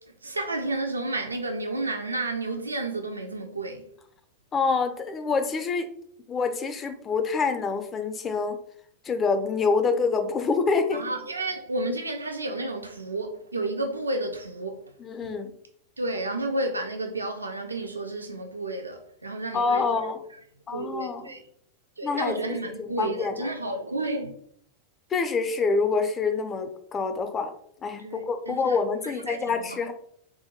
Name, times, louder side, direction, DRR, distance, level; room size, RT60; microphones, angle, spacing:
voice 1, 0.2-3.9 10.9-14.9 15.2-15.3 16.0-20.1 20.7-21.4 22.0-24.3 28.0-28.8 29.0-29.8, right 2 dB, 80° right, 0.3 m, -31 dB
voice 2, 4.5-5.9 6.3-8.6 9.0-11.0 15.0-15.6 19.5-20.2 20.7-21.3 22.0-22.4 22.8-23.5 25.1-27.5 27.8-29.9, left 4 dB, 25° left, 0.4 m, -26 dB
3.5 x 2.2 x 3.0 m
figure-of-eight pair, 90°, 0 cm